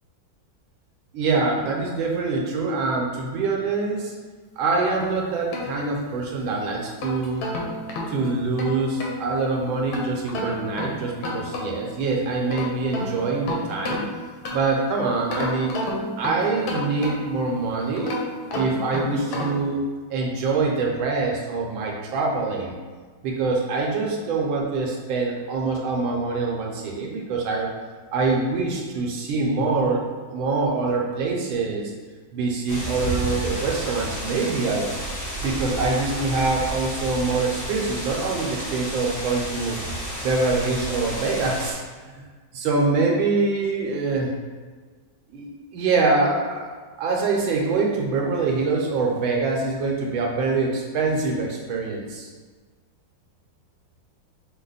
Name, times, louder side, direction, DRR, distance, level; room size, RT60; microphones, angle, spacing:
voice 1, 1.1-4.1 4.6-7.4 8.1-14.0 14.5-15.8 16.2-18.2 18.5-19.8 20.1-22.7 23.2-27.7 28.1-31.9 32.3-34.9 35.4-39.8 40.2-41.8 42.5-44.3 45.3-52.3, right 3 dB, 80° right, -1 dB, 1.6 m, -24 dB
sound 1, 5.0-6.3 6.8-9.2 9.9-11.9 12.3-14.8 15.3-17.5 18.0-19.7, left 2 dB, 85° left, 1.7 m, -31 dB
sound 2, 32.7-41.7, right 1 dB, 25° left, 0.4 m, -31 dB
6.0 x 2.1 x 3.9 m, 1.5 s
omnidirectional pair, 2.2 m